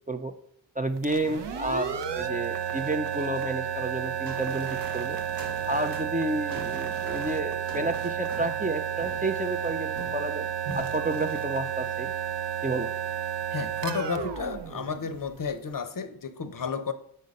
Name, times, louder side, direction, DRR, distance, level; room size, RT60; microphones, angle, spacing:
voice 1, 0.8-5.2 5.7-10.5 10.7-12.1 12.6-12.9, right 2 dB, 20° right, 0.4 m, -31 dB
sound 1, 1.0-15.6, right 9 dB, 60° right, 0.7 m, -32 dB
sound 2, 4.3-10.4 10.6-11.2, right 2 dB, 45° right, 1.2 m, -44 dB
voice 2, 13.5-16.9, left 5 dB, 45° left, 0.6 m, -32 dB
5.5 x 4.0 x 5.1 m
cardioid pair, 55°, 47 cm